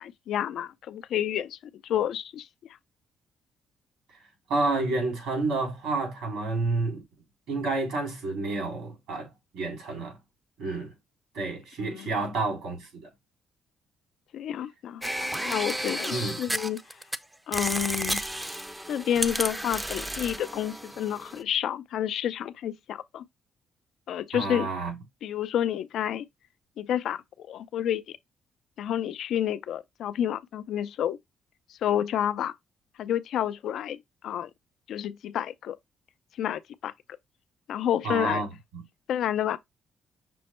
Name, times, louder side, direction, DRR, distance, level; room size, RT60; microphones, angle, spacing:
voice 1, 0.0-1.6 1.8-2.5 11.8-12.1 14.3-16.8 17.5-18.2 18.9-23.2 24.1-24.7 25.2-26.2 26.8-28.2 28.8-31.2 31.8-32.5 33.0-34.0 34.2-34.5 34.9-35.8 36.4-36.9 37.7-38.4 39.1-39.6, left 10 dB, 75° left, 0.4 m, -29 dB
voice 2, 4.5-7.0 7.5-9.3 9.5-10.2 10.6-10.9 11.3-13.1 16.1-16.4 24.3-25.0 38.0-38.8, right 3 dB, 90° right, 3.2 m, -29 dB
sound 1, 15.0-17.2 17.5-21.4, right 1 dB, 10° right, 0.4 m, -32 dB
6.0 x 2.1 x 4.2 m
cardioid pair, 90°, 0 cm